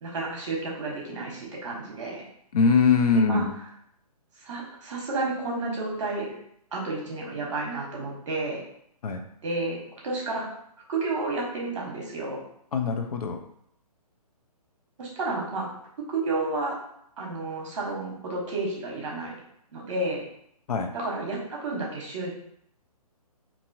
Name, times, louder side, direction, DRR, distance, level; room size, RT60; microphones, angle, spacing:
voice 1, 0.0-2.3 3.1-3.4 4.4-6.3 6.7-8.6 9.4-10.5 10.9-12.4 15.0-15.7 16.1-16.8 17.2-19.3 19.7-20.2 20.9-22.3, right 2 dB, 50° right, -2 dB, 1.1 m, -31 dB
voice 2, 2.5-3.5 9.0-9.2 12.7-13.4 20.7-20.9, left 5 dB, 75° left, 5 dB, 0.5 m, -22 dB
2.9 x 2.6 x 2.6 m, 0.71 s
hypercardioid pair, 160°, 20 cm